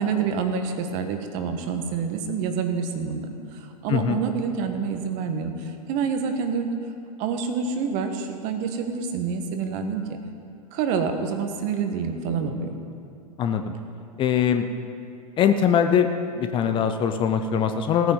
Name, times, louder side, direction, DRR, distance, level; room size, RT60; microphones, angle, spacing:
voice 1, 0.0-6.8 7.2-10.2 10.7-12.8, right 6 dB, 40° right, 6 dB, 1.4 m, -27 dB
voice 2, 13.4-13.7 14.2-14.6 15.4-16.1 16.3-18.1, left 8 dB, 25° left, 7 dB, 0.7 m, -22 dB
17.0 x 9.2 x 5.4 m, 2.6 s
figure-of-eight pair, 100°, 20 cm